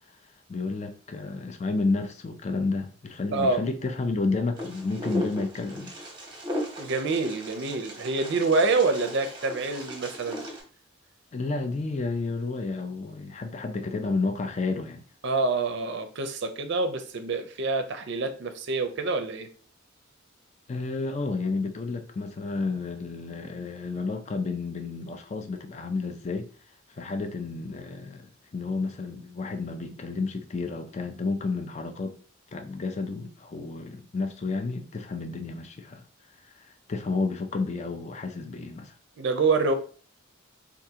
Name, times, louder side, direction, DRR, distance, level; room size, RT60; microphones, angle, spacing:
voice 1, 0.5-5.9 11.3-15.0 20.7-26.5 27.0-28.3 28.5-32.1 32.5-36.0 36.4-38.9, left 3 dB, 35° left, 0.4 m, -31 dB
voice 2, 3.3-3.6 6.8-10.4 15.2-19.5 39.2-39.7, right 3 dB, 60° right, 0.5 m, -26 dB
Wind, 4.6-10.6, equal, 25° right, 0.8 m, -37 dB
3.5 x 2.4 x 2.8 m
head